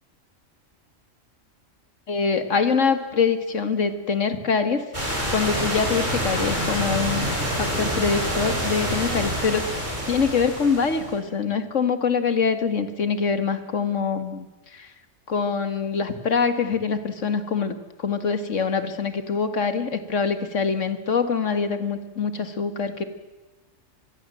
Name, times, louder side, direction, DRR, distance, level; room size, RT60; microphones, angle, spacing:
voice 1, 2.1-4.8 5.3-7.3 7.6-9.7 10.1-14.5 14.7-14.9 15.3-23.0, left 5 dB, 70° left, 10 dB, 2.2 m, -24 dB
sound 1, 4.9-11.2, equal, 35° right, 6.4 m, -27 dB
26.5 x 21.5 x 7.7 m, 1.2 s
omnidirectional pair, 1.3 m